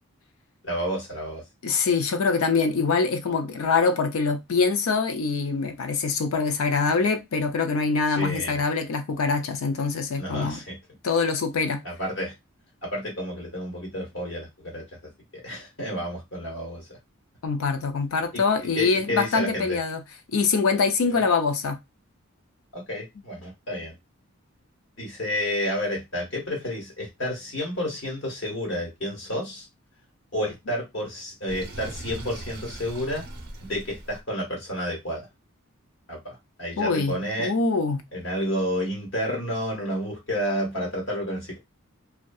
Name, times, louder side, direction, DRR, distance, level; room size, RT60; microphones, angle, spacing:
voice 1, 0.6-1.4 8.1-8.6 10.2-10.8 11.8-12.3 12.8-15.1 15.4-17.0 18.3-19.8 21.1-21.2 22.7-23.9 25.0-29.6 30.3-33.2 33.6-35.3 36.1-37.5 38.1-41.6, equal, 55° left, 1.1 m, -30 dB
voice 2, 1.6-10.6 11.0-11.8 17.4-20.0 20.3-21.8 36.8-38.0, left 4 dB, 75° left, 0.4 m, -24 dB
Sink (filling or washing), 31.5-34.2, right 2 dB, 50° right, 0.6 m, -39 dB
2.6 x 2.2 x 2.3 m
head